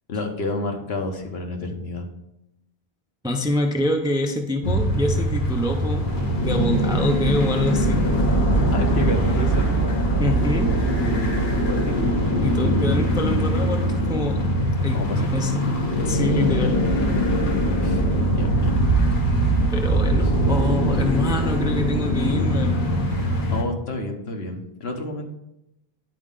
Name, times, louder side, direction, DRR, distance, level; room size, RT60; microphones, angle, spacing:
voice 1, 0.1-2.1 8.7-9.9 11.4-12.3 14.9-15.5 17.8-18.0 18.3-18.7 20.1-20.2 23.5-25.3, left 2 dB, 75° left, 2 dB, 1.2 m, -30 dB
voice 2, 3.2-6.1 6.4-8.1 10.2-10.7 12.4-14.5 14.8-15.8 16.1-16.9 19.7-22.8, left 1 dB, 5° right, 4 dB, 0.4 m, -26 dB
sound 1, 4.6-23.6, right 1 dB, 55° left, 1.2 m, -21 dB
9.8 x 4.2 x 3.7 m, 0.87 s
omnidirectional pair, 1.0 m